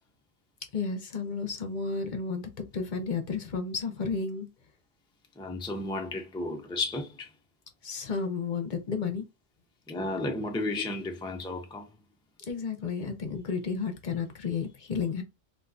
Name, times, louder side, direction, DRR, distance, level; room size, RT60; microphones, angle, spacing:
voice 1, 0.7-4.5 7.8-9.2 12.5-15.2, left 5 dB, 55° left, 0.8 m, -32 dB
voice 2, 5.4-7.3 9.9-11.9, left 2 dB, 5° left, 0.4 m, -33 dB
3.5 x 2.4 x 2.5 m
omnidirectional pair, 1.0 m